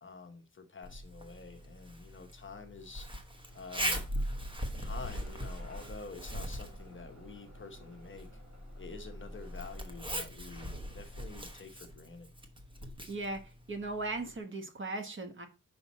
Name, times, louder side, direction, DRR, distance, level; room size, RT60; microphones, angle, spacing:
voice 1, 0.0-3.1 3.5-4.1 4.8-8.3 8.8-12.3, left 4 dB, 35° left, 0.8 m, -48 dB
Zipper (clothing), 0.8-14.4, equal, 15° right, 1.0 m, -41 dB
Bus / Engine starting, 3.5-10.2, equal, 55° right, 2.9 m, -51 dB
voice 2, 13.1-15.5, right 2 dB, 35° right, 1.2 m, -38 dB
5.6 x 5.3 x 4.1 m
wide cardioid pair, 145°, 33 cm